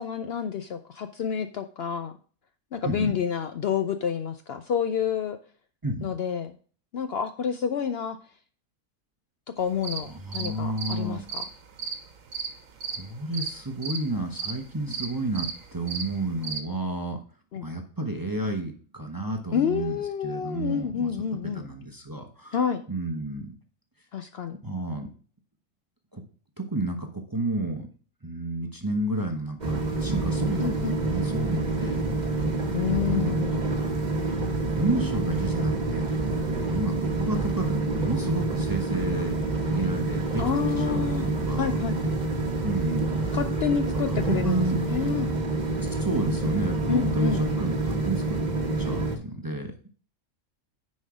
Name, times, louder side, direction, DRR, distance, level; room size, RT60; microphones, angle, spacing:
voice 1, 0.0-2.1 2.7-5.4 6.0-6.6 6.9-8.2 9.6-10.1 10.3-11.4 17.5-17.6 19.5-21.6 22.5-22.8 24.1-24.6 30.6-31.0 32.7-33.6 40.4-41.3 41.6-42.0 43.3-45.4 46.9-47.4, left 7 dB, 60° left, 9 dB, 0.7 m, -28 dB
voice 2, 2.8-3.2 5.8-6.1 10.1-11.2 12.9-17.2 17.6-22.5 22.9-23.5 24.6-25.1 26.1-26.2 26.6-27.9 28.2-32.1 33.1-33.6 34.8-36.0 36.3-39.4 39.7-40.4 40.8-41.8 42.6-43.4 44.0-44.8 45.8-48.4 48.8-49.7, right 2 dB, 20° right, 4 dB, 0.8 m, -31 dB
sound 1, 9.6-16.6, right 6 dB, 80° right, 1.4 m, -35 dB
sound 2, 29.6-49.2, right 2 dB, 35° right, 1.2 m, -27 dB
9.9 x 4.3 x 4.8 m, 0.42 s
omnidirectional pair, 1.4 m